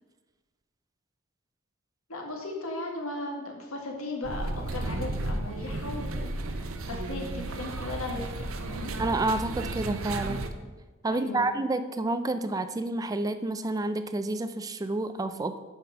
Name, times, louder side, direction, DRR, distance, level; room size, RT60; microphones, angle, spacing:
voice 1, 2.1-9.0 11.1-11.5, left 2 dB, 85° left, 0 dB, 1.9 m, -37 dB
sound 1, 4.2-10.5, right 2 dB, 75° right, 0.8 m, -33 dB
voice 2, 9.0-10.5 11.0-15.6, right 2 dB, 15° right, 10 dB, 0.3 m, -29 dB
8.1 x 5.6 x 5.7 m, 1.3 s
head